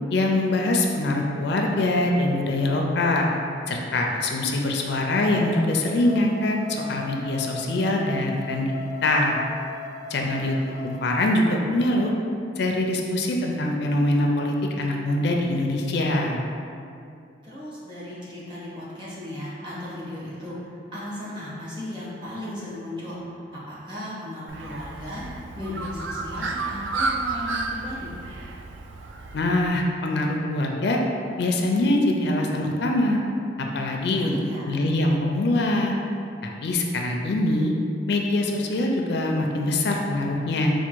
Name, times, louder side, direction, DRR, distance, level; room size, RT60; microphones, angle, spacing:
voice 1, 0.1-3.3 3.7-8.7 9.0-9.4 10.1-10.6 10.8-12.1 12.6-16.4 29.3-31.0 31.4-33.2 33.7-34.3 34.6-35.9 36.4-37.7 38.1-40.7, left 1 dB, 60° left, 1 dB, 0.4 m, -23 dB
sound 1, 5.0-11.0, left 4 dB, ahead, 0.6 m, -39 dB
voice 2, 10.2-10.9 17.4-25.2 25.5-28.2 34.2-34.8, left 1 dB, 25° right, -9 dB, 1.2 m, -36 dB
Bird, 24.5-29.7, right 3 dB, 85° right, 0.3 m, -31 dB
4.4 x 2.2 x 4.5 m, 2.5 s
head